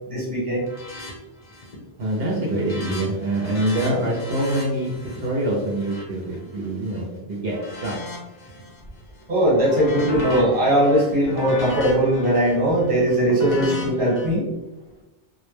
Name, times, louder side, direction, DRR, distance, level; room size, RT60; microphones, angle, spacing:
voice 1, 0.1-0.6 9.3-14.5, right 1 dB, 35° right, -6 dB, 1.1 m, -20 dB
sound 1, 0.6-1.1 1.4-1.8 2.2-7.0 7.5-8.8 9.2-14.3, left 2 dB, 50° left, 0.8 m, -36 dB
voice 2, 2.0-7.9, right 1 dB, 75° right, -3 dB, 0.8 m, -25 dB
2.1 x 2.1 x 3.1 m, 0.99 s
omnidirectional pair, 1.0 m